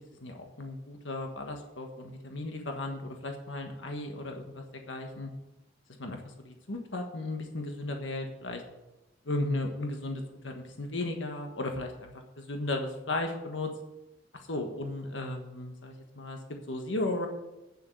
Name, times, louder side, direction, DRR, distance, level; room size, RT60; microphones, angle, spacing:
voice 1, 0.2-5.3 6.0-8.6 9.2-13.7 14.5-16.4 16.7-17.3, left 2 dB, 90° left, 4 dB, 1.4 m, -35 dB
8.8 x 7.2 x 7.7 m, 0.96 s
head